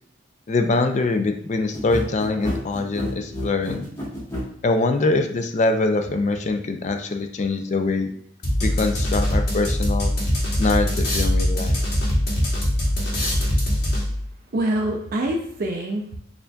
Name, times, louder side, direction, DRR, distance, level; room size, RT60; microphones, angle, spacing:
voice 1, 0.5-3.8 4.6-8.1 8.6-10.1 10.6-11.8, left 3 dB, 35° left, 6 dB, 0.3 m, -23 dB
sound 1, 1.7-4.5, left 1 dB, 15° left, 1.2 m, -29 dB
sound 2, 8.4-14.3, equal, 55° left, 1.1 m, -22 dB
voice 2, 14.5-16.2, right 1 dB, 50° right, 0 dB, 0.4 m, -26 dB
6.7 x 2.5 x 2.2 m, 0.66 s
head